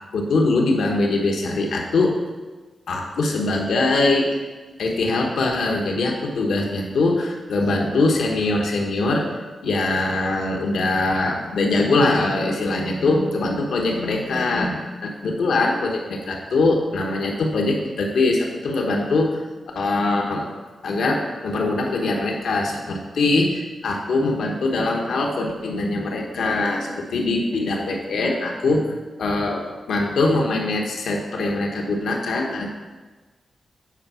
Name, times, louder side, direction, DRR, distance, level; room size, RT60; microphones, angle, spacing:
voice 1, 0.1-2.2 2.9-4.4 4.8-9.3 9.6-19.4 19.7-20.5 20.8-32.7, left 2 dB, 85° left, 0 dB, 1.2 m, -22 dB
8.8 x 4.6 x 5.7 m, 1.3 s
cardioid pair, 75°, 0 cm